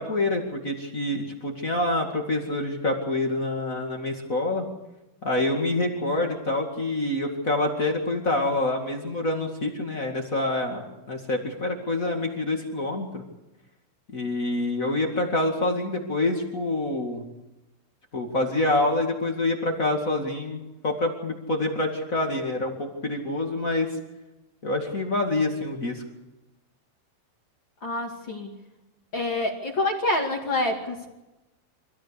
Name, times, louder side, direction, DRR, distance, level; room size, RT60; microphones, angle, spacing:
voice 1, 0.0-4.7 5.2-13.2 14.1-17.3 18.1-24.0 24.6-26.0, left 2 dB, 65° left, 1 dB, 0.8 m, -26 dB
voice 2, 27.8-28.5 29.1-31.1, left 2 dB, 35° left, 1 dB, 2.1 m, -27 dB
25.5 x 16.0 x 8.3 m, 1.0 s
omnidirectional pair, 5.4 m